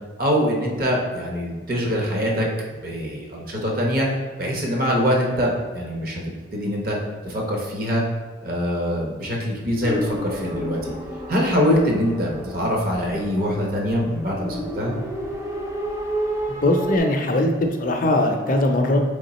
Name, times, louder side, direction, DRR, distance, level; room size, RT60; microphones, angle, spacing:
voice 1, 0.2-4.1 4.4-6.2 6.5-7.0 7.2-8.0 8.4-10.9 11.3-14.9, equal, 45° right, -1 dB, 0.9 m, -23 dB
sound 1, 9.8-17.0, right 1 dB, 15° right, 0.4 m, -31 dB
voice 2, 16.5-19.0, left 1 dB, 45° left, 3 dB, 0.5 m, -20 dB
3.6 x 3.5 x 4.1 m, 1.3 s
head